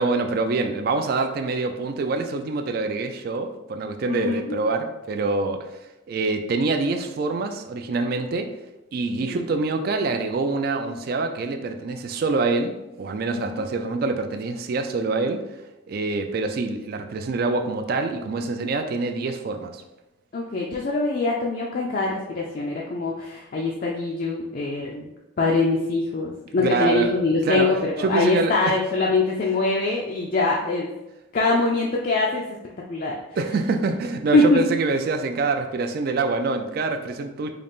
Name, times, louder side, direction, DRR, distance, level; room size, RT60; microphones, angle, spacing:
voice 1, 0.0-5.7 6.1-8.5 8.9-15.4 15.9-19.8 26.6-27.1 27.4-28.7 31.5-31.6 33.4-37.5, right 3 dB, 45° right, 6 dB, 0.3 m, -25 dB
voice 2, 4.1-4.6 8.0-8.1 9.2-9.4 13.3-13.7 20.3-25.1 25.4-30.9 31.3-32.4 32.9-33.1 34.3-34.6, left 3 dB, 45° left, -2 dB, 0.3 m, -23 dB
3.8 x 2.4 x 3.5 m, 0.97 s
head